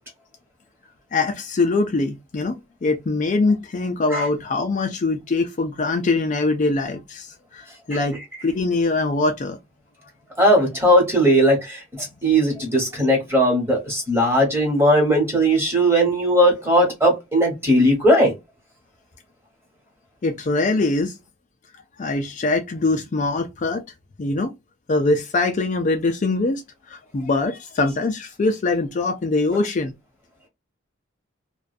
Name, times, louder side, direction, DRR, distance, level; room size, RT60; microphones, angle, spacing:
voice 1, 1.1-8.2 8.4-9.6 20.2-21.1 22.0-23.8 24.2-24.5 24.9-26.6 26.9-29.9, left 3 dB, 40° left, 0.4 m, -23 dB
voice 2, 10.4-18.3, equal, 10° right, 1.2 m, -18 dB
2.5 x 2.2 x 2.4 m
head